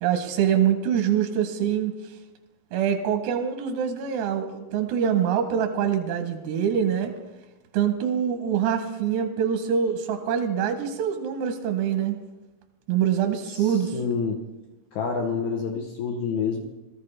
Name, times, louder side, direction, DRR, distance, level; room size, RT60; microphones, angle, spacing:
voice 1, 0.0-2.0 2.7-7.1 7.7-12.2 12.9-13.9, right 8 dB, 85° right, 6 dB, 3.0 m, -24 dB
voice 2, 13.5-14.4 14.9-16.6, left 5 dB, 80° left, 2 dB, 1.7 m, -28 dB
18.0 x 14.0 x 3.3 m, 1.1 s
omnidirectional pair, 4.6 m